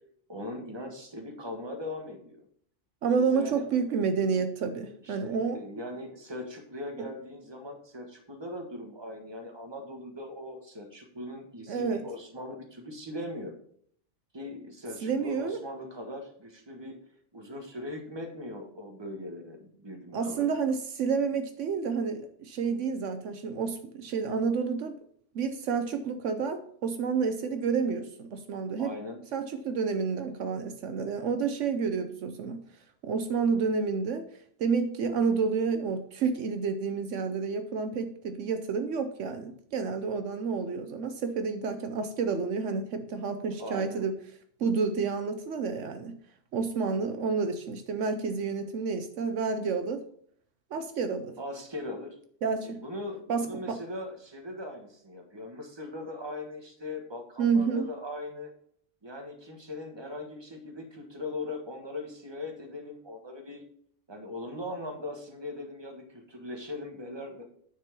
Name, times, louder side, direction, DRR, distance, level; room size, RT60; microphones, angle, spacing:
voice 1, 0.3-2.5 3.2-3.7 5.0-13.5 14.3-17.0 17.3-20.7 28.8-29.2 43.6-44.1 51.4-52.2 52.6-58.5 59.0-63.6 64.1-67.4, left 1 dB, 20° right, 3 dB, 1.4 m, -40 dB
voice 2, 3.0-5.6 11.7-12.0 15.0-15.6 20.1-25.0 25.3-28.9 29.3-32.6 33.0-34.3 34.6-44.1 44.6-46.2 46.5-50.0 50.7-51.4 52.4-52.8 53.3-53.8 57.4-57.9, right 5 dB, 75° right, 8 dB, 1.1 m, -29 dB
9.5 x 4.5 x 5.9 m, 0.62 s
omnidirectional pair, 1.3 m